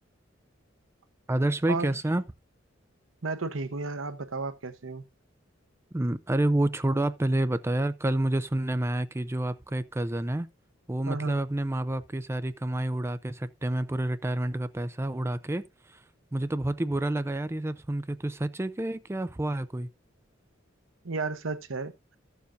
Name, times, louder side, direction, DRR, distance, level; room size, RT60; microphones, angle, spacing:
voice 1, 1.3-2.2 5.9-10.5 10.9-16.0 16.3-19.9, right 1 dB, 15° right, 0.5 m, -29 dB
voice 2, 3.2-5.0 11.1-11.4 21.0-21.9, right 3 dB, 85° right, 0.9 m, -33 dB
14.0 x 7.0 x 2.6 m
head